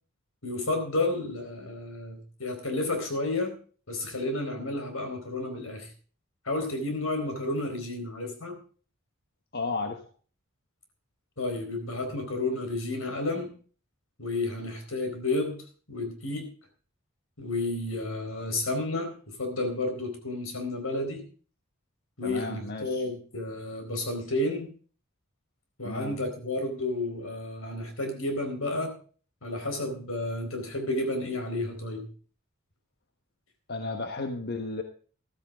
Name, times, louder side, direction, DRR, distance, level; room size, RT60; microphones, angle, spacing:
voice 1, 0.4-3.5 3.9-5.9 6.4-8.6 11.4-13.5 14.2-15.6 15.9-16.5 17.4-21.2 22.2-24.7 25.8-28.9 29.4-32.1, left 2 dB, 85° left, 5 dB, 4.3 m, -31 dB
voice 2, 9.5-10.0 22.2-23.0 25.8-26.2 33.7-34.8, left 3 dB, 55° left, 5 dB, 1.3 m, -33 dB
14.0 x 13.0 x 3.6 m, 0.40 s
head